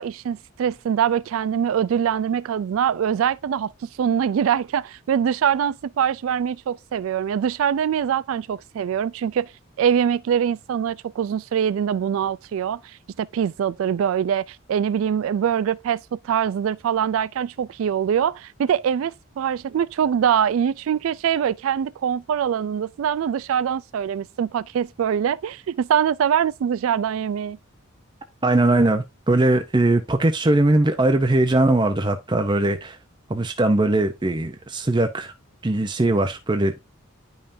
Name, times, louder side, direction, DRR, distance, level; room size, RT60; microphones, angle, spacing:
voice 1, 0.0-9.5 9.8-12.8 13.2-27.6, right 8 dB, 75° right, 0.3 m, -23 dB
voice 2, 28.4-33.0 33.3-35.3 35.6-36.7, right 2 dB, 20° right, 0.6 m, -20 dB
10.0 x 5.5 x 2.6 m
head